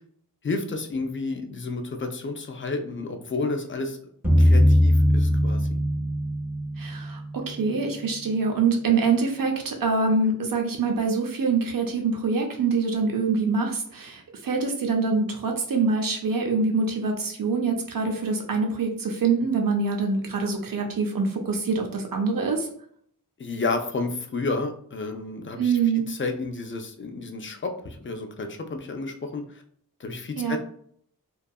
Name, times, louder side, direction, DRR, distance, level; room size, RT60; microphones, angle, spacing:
voice 1, 0.4-4.0 4.4-5.8 23.4-29.6 30.0-30.6, left 3 dB, 35° left, 5 dB, 0.4 m, -31 dB
sound 1, 4.2-7.4, equal, 5° right, 0.6 m, -20 dB
voice 2, 6.8-22.7 25.6-26.0 30.4-30.6, right 4 dB, 65° right, 2 dB, 0.6 m, -25 dB
2.6 x 2.3 x 2.3 m, 0.63 s
wide cardioid pair, 70°, 36 cm